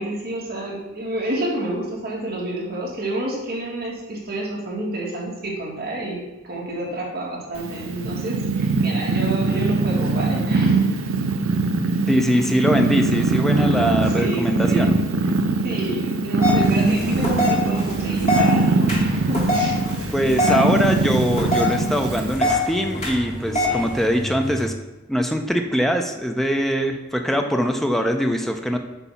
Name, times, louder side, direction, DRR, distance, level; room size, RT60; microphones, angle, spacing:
voice 1, 0.0-10.9 14.0-14.9 15.6-19.7 23.6-24.0, right 1 dB, 50° right, -4 dB, 1.9 m, -29 dB
Purr, 7.6-22.3, right 3 dB, 75° right, 0.6 m, -22 dB
voice 2, 12.1-14.9 20.1-24.7 25.1-28.8, equal, ahead, 4 dB, 0.5 m, -22 dB
sound 1, 16.4-24.7, left 1 dB, 35° left, 1.5 m, -25 dB
8.1 x 2.7 x 5.6 m, 1.1 s
head